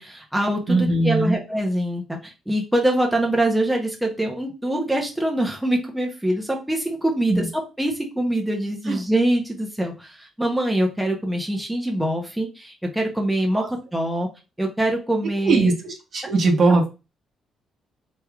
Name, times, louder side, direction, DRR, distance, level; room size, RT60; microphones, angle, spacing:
voice 1, 0.0-14.3 14.6-15.7, right 1 dB, 5° right, 1 dB, 0.8 m, -24 dB
voice 2, 0.7-1.4 7.3-7.5 8.9-9.0 13.5-13.7 15.4-16.8, right 3 dB, 55° right, 3 dB, 1.0 m, -20 dB
3.4 x 3.1 x 2.3 m, 0.29 s
cardioid pair, 90°, 0 cm